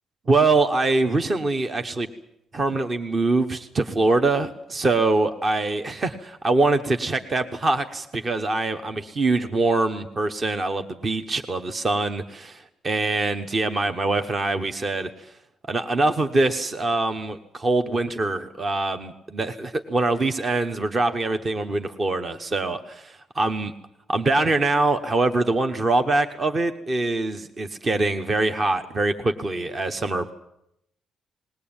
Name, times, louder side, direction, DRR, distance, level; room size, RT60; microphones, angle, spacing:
voice 1, 0.3-2.1 2.5-15.3 15.7-23.7 24.1-30.3, right 2 dB, 25° right, 8 dB, 0.9 m, -24 dB
20.0 x 19.0 x 8.8 m, 0.81 s
cardioid pair, 170°, 0 cm